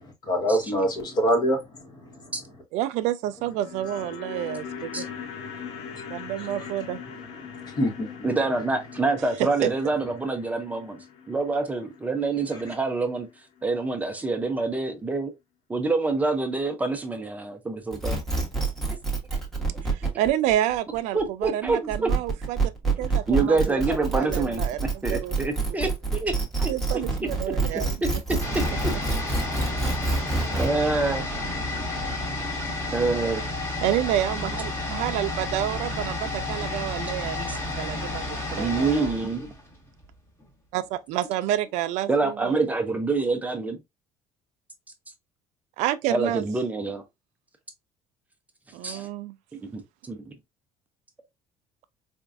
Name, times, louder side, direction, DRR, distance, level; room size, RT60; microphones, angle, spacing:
voice 1, 0.0-2.4 4.8-6.8 7.1-8.3 9.6-9.7 12.5-12.7, equal, 35° left, 1.1 m, -28 dB
voice 2, 2.7-5.0 6.1-7.0 19.8-22.6 23.0-25.4 26.7-27.9 33.8-39.1 40.7-42.5 45.8-46.4 48.7-49.3, right 13 dB, 75° right, 0.4 m, -29 dB
sound 1, 3.3-13.6 13.9-14.0, left 7 dB, 65° left, 0.8 m, -41 dB
voice 3, 8.2-11.0 11.3-13.3 13.6-15.3 15.7-18.2 19.3-19.4 20.0-20.1 21.1-22.1 23.3-26.7 27.5-28.9 30.5-31.2 32.9-33.4 37.5-37.6 38.6-39.5 42.1-43.8 46.1-47.0 48.8-49.1 49.5-50.2, right 3 dB, 15° right, 0.5 m, -26 dB
sound 2, 17.9-30.7, right 3 dB, 5° left, 1.0 m, -27 dB
sound 3, 28.4-40.1 40.4-40.5, left 2 dB, 20° left, 1.2 m, -31 dB
4.3 x 2.3 x 2.4 m
cardioid pair, 155°, 12 cm